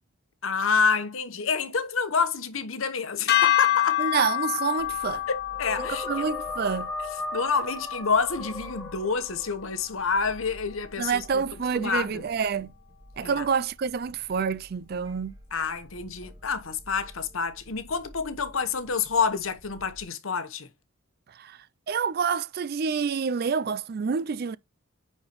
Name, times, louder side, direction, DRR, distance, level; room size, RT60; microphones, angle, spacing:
voice 1, 0.4-4.0 5.3-6.1 7.3-11.4 11.7-12.2 13.2-13.4 15.5-20.7, left 5 dB, 80° left, 1.1 m, -28 dB
sound 1, 3.3-9.6, left 13 dB, 50° left, 0.8 m, -28 dB
voice 2, 4.0-5.2 5.9-6.9 11.0-12.7 13.2-15.3 21.3-24.6, right 6 dB, 50° right, 0.4 m, -28 dB
sound 2, 4.8-20.0, equal, 20° right, 1.9 m, -51 dB
sound 3, 5.5-9.6, left 2 dB, 5° left, 1.1 m, -37 dB
9.5 x 4.3 x 3.1 m
head